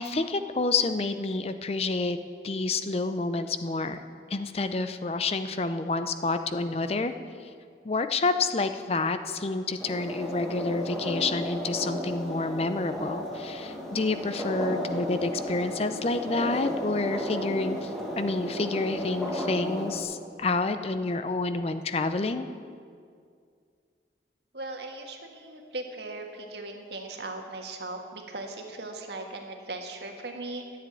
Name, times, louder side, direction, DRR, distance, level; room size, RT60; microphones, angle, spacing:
voice 1, 0.0-2.2 2.4-4.0 4.3-7.1 7.8-22.5, left 3 dB, 35° left, 10 dB, 0.5 m, -29 dB
sound 1, 9.8-20.0, left 1 dB, ahead, 1.5 m, -34 dB
voice 2, 24.5-30.8, right 2 dB, 75° right, 3 dB, 1.5 m, -38 dB
10.5 x 7.6 x 9.6 m, 2.2 s
head